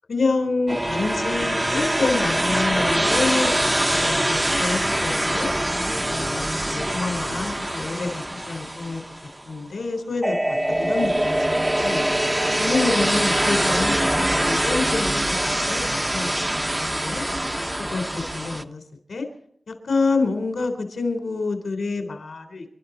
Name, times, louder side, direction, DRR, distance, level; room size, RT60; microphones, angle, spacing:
voice 1, 0.1-5.5 6.1-9.0 9.5-12.0 12.6-15.4 15.7-16.3 16.6-16.7 17.0-17.2 17.8-18.8 19.1-19.3 19.7-22.7, left 3 dB, 80° left, 6 dB, 3.6 m, -27 dB
sound 1, 0.7-9.5 10.2-18.6, right 1 dB, 15° right, 1.0 m, -23 dB
28.5 x 12.0 x 4.0 m, 0.68 s
wide cardioid pair, 75°, 0 cm